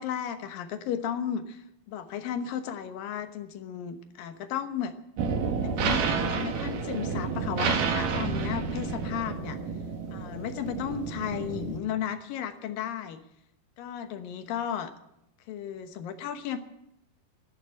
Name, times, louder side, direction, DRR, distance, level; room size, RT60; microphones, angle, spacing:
voice 1, 0.0-1.6 1.9-4.9 5.6-9.6 10.1-13.2 13.8-14.9 15.5-16.6, left 9 dB, 80° left, 8 dB, 2.9 m, -34 dB
sound 1, 5.2-11.8, right 5 dB, 70° right, 3.2 m, -30 dB
12.0 x 11.0 x 10.0 m, 0.83 s
omnidirectional pair, 3.9 m